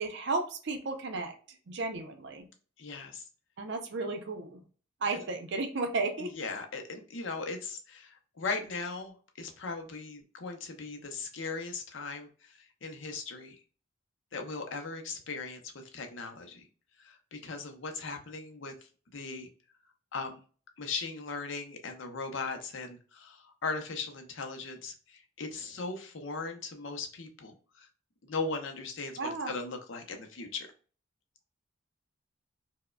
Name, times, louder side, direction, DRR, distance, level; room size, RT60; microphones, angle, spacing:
voice 1, 0.0-1.3 1.7-2.5 3.6-4.6 5.0-6.3 29.2-29.5, right 3 dB, 55° right, 6 dB, 0.5 m, -33 dB
voice 2, 2.8-3.2 6.2-13.6 14.3-16.7 17.0-19.5 20.1-20.4 20.8-27.9 28.3-30.7, left 4 dB, 60° left, 4 dB, 0.6 m, -38 dB
4.6 x 2.1 x 2.2 m, 0.39 s
head